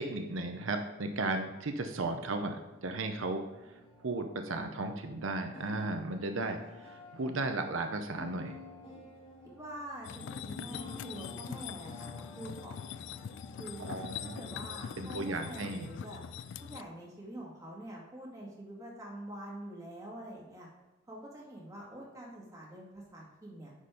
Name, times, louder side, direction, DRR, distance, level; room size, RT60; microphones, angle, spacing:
voice 1, 0.0-8.6 13.8-14.5 15.0-15.9, right 2 dB, 90° right, 6 dB, 0.7 m, -35 dB
sound 1, 1.9-16.6, left 2 dB, 30° left, 1.8 m, -52 dB
voice 2, 9.6-12.9 13.6-14.0 14.4-16.2 16.6-20.7 21.1-23.7, right 1 dB, 15° right, -4 dB, 2.1 m, -46 dB
sound 2, 10.0-16.8, left 8 dB, 65° left, 0.3 m, -43 dB
9.9 x 4.3 x 5.0 m, 1.1 s
head